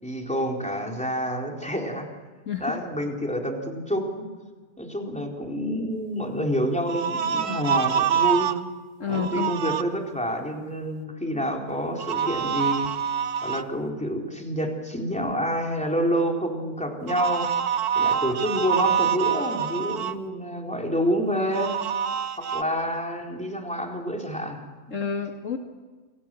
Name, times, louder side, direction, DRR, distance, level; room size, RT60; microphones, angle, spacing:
voice 1, 0.0-2.1 2.6-4.2 4.8-8.5 9.1-12.9 13.4-17.5 17.9-21.8 22.4-25.0, equal, 5° left, 1 dB, 4.0 m, -28 dB
voice 2, 2.5-2.8 9.0-9.5 24.9-25.6, left 6 dB, 55° left, 3 dB, 2.0 m, -29 dB
sound 1, 6.9-8.6 9.1-9.8 12.0-13.6 17.1-20.2 21.5-22.6, right 8 dB, 85° right, 1.5 m, -26 dB
29.5 x 23.0 x 7.7 m, 1.4 s
omnidirectional pair, 1.6 m